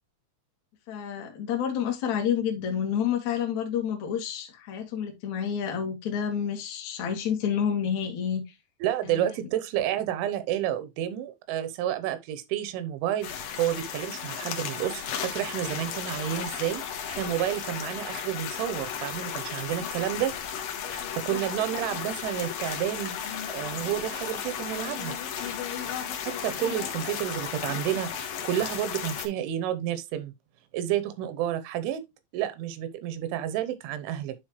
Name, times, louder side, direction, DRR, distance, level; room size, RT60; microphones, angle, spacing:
voice 1, 0.9-8.4 9.0-9.3 21.3-21.4, left 8 dB, 50° left, 2.4 m, -29 dB
voice 2, 8.8-13.3 13.6-16.8 17.1-20.3 20.9-23.2 23.5-25.2 26.3-30.3 30.7-32.0 32.3-34.3, right 11 dB, 85° right, 3.2 m, -30 dB
sound 1, 13.2-29.3, left 8 dB, 65° left, 2.4 m, -34 dB
11.0 x 4.0 x 3.2 m
omnidirectional pair, 5.4 m